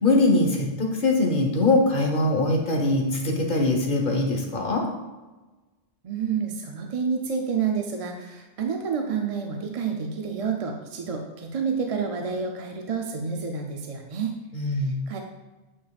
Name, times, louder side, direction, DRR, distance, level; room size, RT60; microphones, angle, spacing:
voice 1, 0.0-4.8 14.5-15.0, left 2 dB, 55° left, 2 dB, 1.2 m, -22 dB
voice 2, 6.0-14.4 15.1-15.2, right 6 dB, 45° right, 2 dB, 0.5 m, -29 dB
8.6 x 5.1 x 2.4 m, 1.2 s
omnidirectional pair, 1.0 m